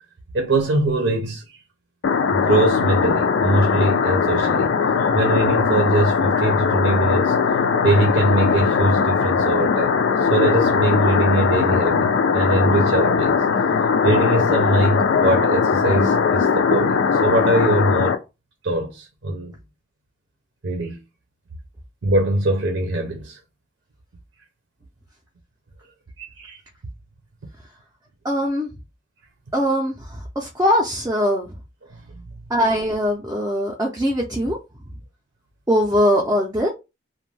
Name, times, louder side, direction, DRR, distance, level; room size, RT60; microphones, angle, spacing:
voice 1, 0.3-1.4 2.3-4.8 5.1-7.3 7.8-9.9 10.2-13.4 14.0-18.2 18.6-19.5 20.6-21.0 22.0-23.4 26.2-26.6, right 2 dB, 80° right, 0.6 m, -22 dB
sound 1, 2.0-18.2, left 5 dB, 85° left, 0.4 m, -19 dB
voice 2, 28.2-28.7 29.5-31.5 32.5-34.6 35.7-36.7, equal, 15° right, 0.4 m, -21 dB
2.5 x 2.2 x 3.2 m
head